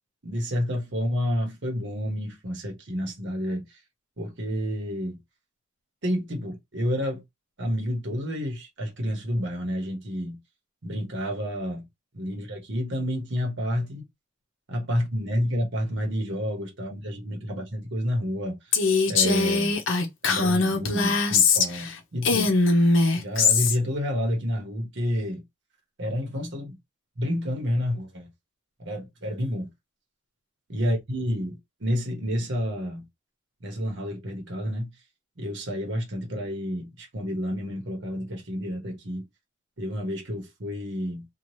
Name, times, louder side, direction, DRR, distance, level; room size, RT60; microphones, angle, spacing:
voice 1, 0.2-3.6 4.2-5.2 6.0-7.2 7.6-10.4 10.8-11.9 12.1-14.0 14.7-18.6 19.1-19.8 20.3-22.6 23.1-25.4 26.0-26.8 27.2-28.3 28.8-29.7 30.7-33.0 33.6-34.9 35.4-39.2 39.8-41.3, equal, 60° right, 1.0 m, -29 dB
Female speech woman speaking, 18.7-21.9 22.2-23.8, left 4 dB, 65° left, 0.7 m, -21 dB
2.8 x 2.3 x 3.1 m
head